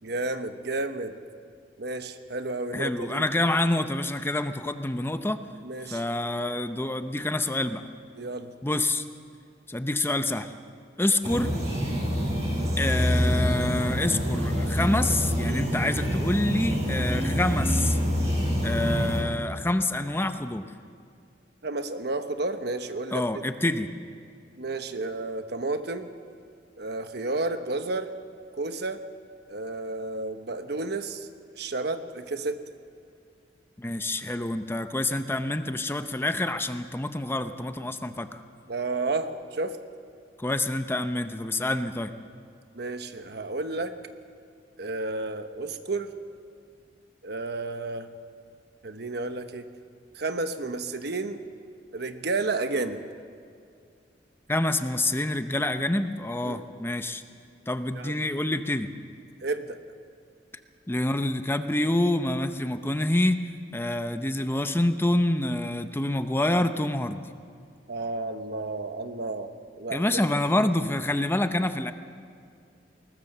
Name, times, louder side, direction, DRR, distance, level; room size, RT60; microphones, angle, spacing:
voice 1, 0.0-1.1 1.8-3.2 5.6-6.0 8.2-8.5 21.6-23.4 24.6-26.1 26.8-28.1 28.6-29.0 29.5-31.3 31.5-32.6 38.7-39.8 42.7-44.0 44.8-46.1 47.2-48.1 48.8-49.7 50.1-51.4 51.9-53.0 56.4-56.6 57.9-58.2 59.4-59.8 67.9-69.5 69.8-70.2, right 3 dB, 65° right, 8 dB, 1.2 m, -31 dB
voice 2, 2.7-5.4 5.9-7.8 8.6-9.0 9.7-10.5 11.0-11.5 12.8-18.0 18.6-20.7 23.1-23.9 33.8-38.4 40.4-42.1 54.5-57.2 57.7-58.9 60.9-63.4 63.7-67.2 69.9-71.9, left 1 dB, 15° left, 9 dB, 0.7 m, -27 dB
sound 1, 11.2-19.2, equal, 40° right, 7.2 m, -26 dB
21.0 x 19.5 x 6.8 m, 2.3 s
head